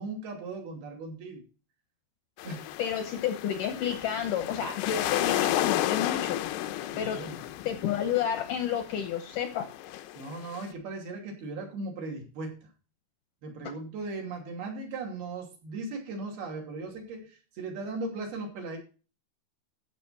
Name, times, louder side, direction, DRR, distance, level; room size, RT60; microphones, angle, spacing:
voice 1, 0.0-1.4 2.4-2.7 6.9-7.4 7.9-8.0 10.2-12.7 13.4-18.8, right 3 dB, 65° right, 1 dB, 4.7 m, -38 dB
sound 1, 2.4-10.6, left 13 dB, 85° left, 2.8 m, -33 dB
voice 2, 2.8-6.4 7.0-7.2 7.7-9.7 13.6-13.7, left 9 dB, 70° left, 7 dB, 2.1 m, -30 dB
14.0 x 7.3 x 4.4 m, 0.35 s
omnidirectional pair, 4.8 m